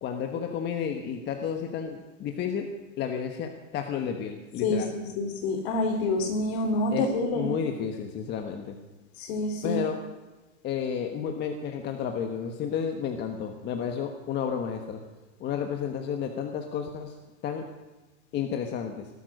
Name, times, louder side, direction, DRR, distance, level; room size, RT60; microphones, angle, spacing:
voice 1, 0.0-2.7 3.0-4.9 6.9-7.1 7.3-8.8 9.6-10.0 10.6-15.0 15.4-17.1 17.4-17.6 18.3-19.1, left 7 dB, 25° left, 5 dB, 1.3 m, -31 dB
voice 2, 4.6-7.5 9.2-9.8, left 2 dB, 55° left, 5 dB, 3.8 m, -27 dB
18.5 x 12.0 x 6.5 m, 1.2 s
supercardioid pair, 155°, 39 cm